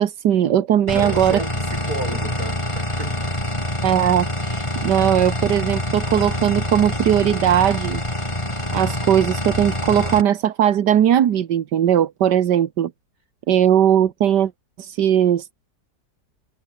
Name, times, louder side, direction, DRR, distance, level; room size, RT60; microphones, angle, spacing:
voice 1, 0.0-1.4 3.8-8.0 8.7-12.9 13.5-14.5 14.8-15.5, right 10 dB, 80° right, 1.7 m, -18 dB
sound 1, 0.9-10.2, left 1 dB, 15° left, 4.7 m, -26 dB
voice 2, 0.9-3.3, right 2 dB, 60° right, 6.9 m, -32 dB
omnidirectional pair, 1.8 m